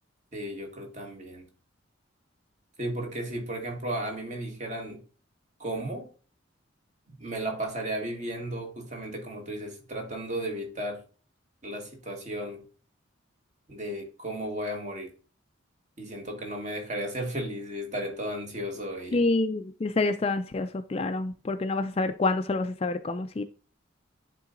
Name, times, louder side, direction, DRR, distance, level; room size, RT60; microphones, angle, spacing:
voice 1, 0.3-1.5 2.8-5.0 5.6-6.1 7.2-11.0 11.6-12.6 13.7-15.1 16.0-19.2, right 1 dB, 35° right, 2 dB, 1.5 m, -34 dB
voice 2, 19.1-23.4, left 3 dB, 30° left, 9 dB, 0.3 m, -27 dB
11.0 x 3.8 x 2.5 m, 0.38 s
head